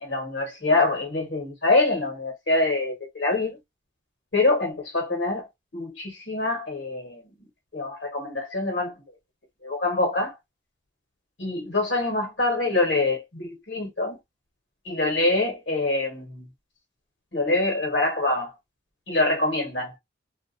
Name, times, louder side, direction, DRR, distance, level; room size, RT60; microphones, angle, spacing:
voice 1, 0.0-3.6 4.3-5.4 5.7-7.2 7.7-8.9 9.6-10.3 11.4-14.2 14.8-16.5 17.3-18.5 19.1-19.9, left 2 dB, 65° left, 1.2 m, -25 dB
2.8 x 2.4 x 2.5 m
head